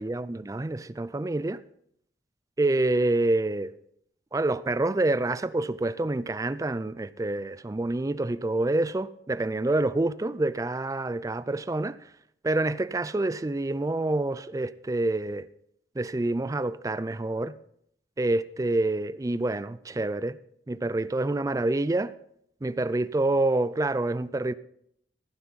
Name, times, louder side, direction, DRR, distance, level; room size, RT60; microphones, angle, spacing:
voice 1, 0.0-1.6 2.6-3.7 4.3-12.0 12.4-15.5 16.0-17.6 18.2-20.4 20.7-22.1 22.6-24.5, right 2 dB, 20° right, 0.4 m, -27 dB
15.5 x 9.3 x 4.0 m
head